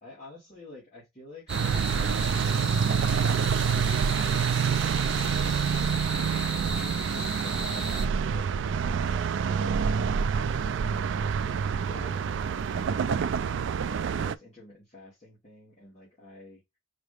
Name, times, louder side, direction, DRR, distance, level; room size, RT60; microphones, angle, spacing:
voice 1, 0.0-3.0 3.5-4.9 5.6-9.9 10.4-13.5 13.9-16.6, left 2 dB, 35° left, 2.1 m, -49 dB
sound 1, 1.5-8.1, right 1 dB, 5° right, 0.8 m, -36 dB
sound 2, 1.5-14.4, right 6 dB, 65° right, 0.3 m, -27 dB
4.8 x 2.7 x 3.3 m
head